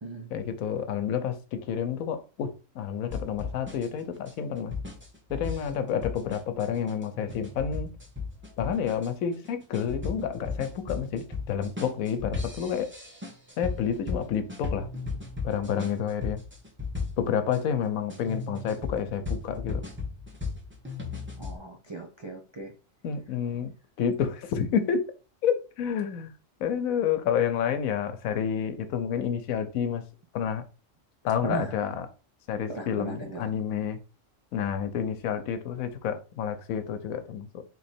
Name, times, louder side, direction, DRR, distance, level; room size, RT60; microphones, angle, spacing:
voice 1, 0.3-4.7 5.3-7.9 8.6-12.9 13.6-14.9 15.4-16.4 17.2-19.8 23.0-23.7 24.0-25.0 25.4-26.3 26.6-30.0 30.3-30.6 31.2-32.1 32.5-34.0 34.5-37.6, left 8 dB, 90° left, 1.1 m, -29 dB
sound 1, 3.1-17.6 18.1-21.6, left 4 dB, 10° right, 1.2 m, -36 dB
voice 2, 21.4-22.7 31.4-31.8 32.7-33.5, right 4 dB, 35° right, 0.4 m, -37 dB
3.9 x 3.0 x 4.3 m
omnidirectional pair, 1.4 m